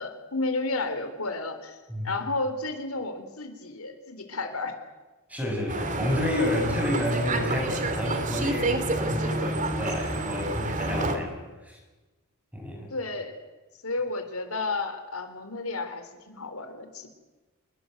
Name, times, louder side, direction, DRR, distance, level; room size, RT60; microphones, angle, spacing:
voice 1, 0.0-1.8 2.0-4.7 12.9-13.4 13.8-17.1, left 3 dB, 90° left, 7 dB, 3.8 m, -32 dB
voice 2, 5.3-11.8 12.5-12.9, left 1 dB, 5° right, 1 dB, 7.0 m, -30 dB
sound 1, 5.7-11.2, right 2 dB, 35° right, 2.6 m, -29 dB
27.5 x 21.5 x 8.0 m, 1.2 s
head